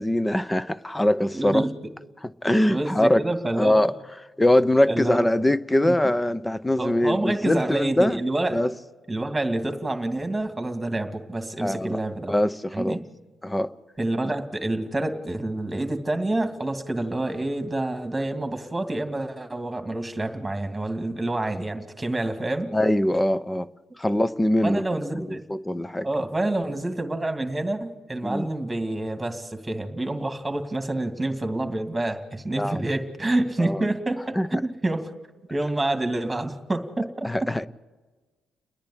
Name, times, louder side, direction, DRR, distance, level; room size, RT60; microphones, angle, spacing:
voice 1, 0.0-1.6 2.2-3.2 3.6-8.2 8.5-8.7 11.6-12.0 12.3-13.0 13.4-13.7 22.7-23.7 24.0-24.9 25.1-26.1 28.2-28.5 32.6-32.9 33.6-33.9 34.4-34.6 37.2-37.7, left 1 dB, 10° left, 0.8 m, -23 dB
voice 2, 1.3-1.7 2.7-3.9 4.9-5.3 5.8-6.0 6.8-8.6 9.1-12.4 12.7-13.0 14.0-22.8 24.6-25.4 26.0-35.0 35.5-37.5, right 2 dB, 15° right, 2.4 m, -28 dB
30.0 x 10.5 x 9.9 m
cardioid pair, 90°, 0 cm